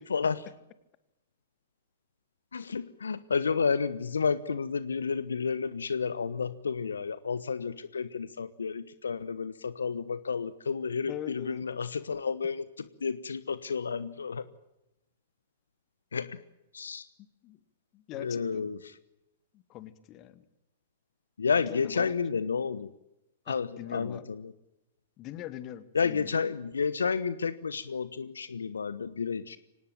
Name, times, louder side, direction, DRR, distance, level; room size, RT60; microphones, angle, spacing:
voice 1, 0.1-0.4 2.5-14.5 16.1-16.4 16.7-17.0 18.2-18.8 21.4-22.9 23.5-24.5 25.9-29.6, left 5 dB, 80° left, 15 dB, 1.1 m, -31 dB
voice 2, 11.1-11.6 17.4-17.6 17.9-18.7 19.5-20.4 21.7-22.1 23.5-24.3 25.2-26.4, left 13 dB, 35° left, 13 dB, 2.2 m, -42 dB
25.0 x 19.0 x 9.0 m, 0.93 s
figure-of-eight pair, 105°, 0 cm